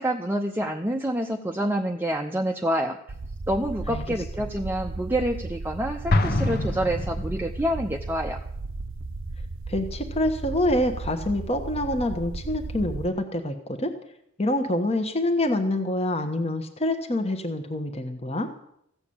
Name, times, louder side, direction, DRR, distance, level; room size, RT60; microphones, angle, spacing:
voice 1, 0.0-3.0 3.5-8.4, right 1 dB, 10° right, 2 dB, 0.7 m, -27 dB
sound 1, 3.1-13.1, right 3 dB, 65° right, 0.7 m, -35 dB
Explosion, 6.1-7.8, left 2 dB, 50° left, 1.0 m, -25 dB
voice 2, 9.7-13.9 14.4-18.5, left 1 dB, 30° left, 5 dB, 1.2 m, -26 dB
15.0 x 7.0 x 8.6 m, 0.75 s
head